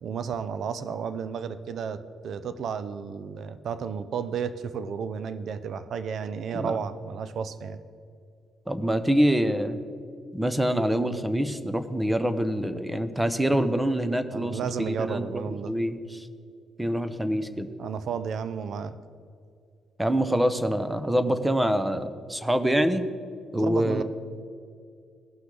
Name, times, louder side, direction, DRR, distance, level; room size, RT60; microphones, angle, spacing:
voice 1, 0.0-7.8 14.3-15.7 17.8-18.9 23.5-24.0, right 6 dB, 65° right, 13 dB, 0.5 m, -32 dB
voice 2, 8.7-9.8 10.3-15.3 15.6-16.3 16.8-17.7 20.0-23.1 23.5-24.0, equal, 10° right, 10 dB, 0.7 m, -25 dB
16.5 x 5.9 x 3.9 m, 2.3 s
cardioid pair, 90°, 0 cm